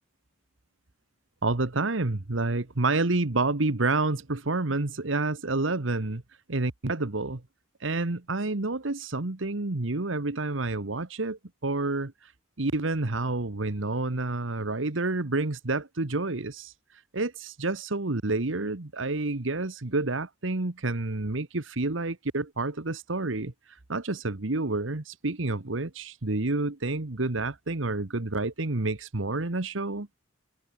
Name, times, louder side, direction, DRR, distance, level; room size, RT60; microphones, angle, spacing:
voice 1, 1.4-6.2 6.5-7.4 7.8-12.3 12.6-16.7 17.1-23.5 23.9-30.1, right 2 dB, 85° right, 1.4 m, -29 dB
head